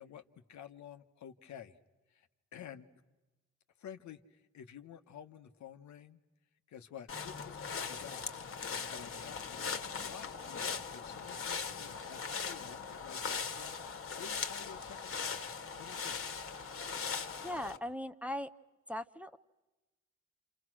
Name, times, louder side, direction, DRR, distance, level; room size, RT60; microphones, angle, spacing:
voice 1, 0.0-1.8 2.1-2.9 3.8-6.2 6.7-15.4 15.7-16.3, left 8 dB, 70° left, 8 dB, 1.5 m, -51 dB
sound 1, 7.1-17.8, left 5 dB, 45° left, 1.9 m, -40 dB
voice 2, 17.4-18.5 18.9-19.4, left 1 dB, 5° right, 8 dB, 0.9 m, -39 dB
28.5 x 28.0 x 6.3 m, 1.1 s
cardioid pair, 90°, 30 cm